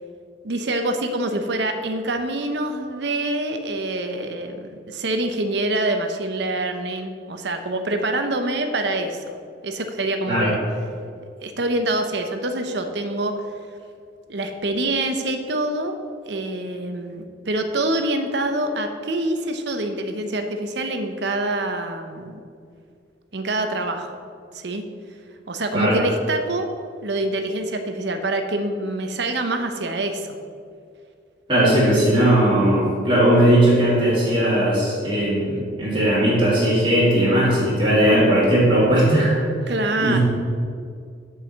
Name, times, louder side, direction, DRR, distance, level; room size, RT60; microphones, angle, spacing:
voice 1, 0.4-9.2 9.6-10.6 11.4-13.4 14.3-16.0 16.3-22.4 23.3-24.2 24.5-24.8 25.5-26.7 27.0-30.4 39.7-40.2, right 2 dB, 65° right, 6 dB, 0.8 m, -25 dB
voice 2, 31.5-39.4 40.0-40.2, right 1 dB, 25° right, -9 dB, 2.4 m, -18 dB
7.5 x 4.8 x 7.0 m, 2.2 s
head